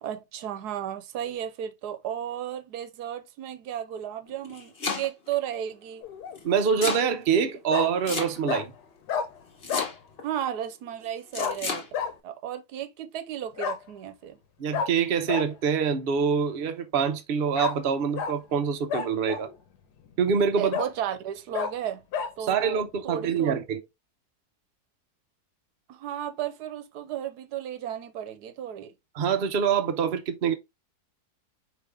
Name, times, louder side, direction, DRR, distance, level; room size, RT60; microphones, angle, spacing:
voice 1, 0.0-6.0 10.2-11.9 12.2-14.4 20.6-22.0 22.4-23.5 25.9-28.9, right 10 dB, 80° right, 1.2 m, -34 dB
Domestic sounds home sounds, 4.3-5.3 6.3-7.1 8.0-8.7 9.6-10.2 11.3-11.9, left 4 dB, 40° left, 1.3 m, -32 dB
Bark, 6.0-6.4 7.7-7.9 8.5-8.6 9.1-9.3 9.7-9.9 11.4-11.6 11.9-12.1 13.6-13.8 14.7-14.9 15.3-15.4 17.6-17.8 18.2-18.3 18.9-19.5 20.1-20.2 20.7-20.9 21.5-21.7 22.1-22.3, left 7 dB, 85° left, 1.3 m, -29 dB
voice 2, 6.4-8.7 14.6-19.5 20.2-20.7 22.4-23.8 29.1-30.5, right 7 dB, 50° right, 0.8 m, -25 dB
5.0 x 3.1 x 3.3 m
omnidirectional pair, 1.7 m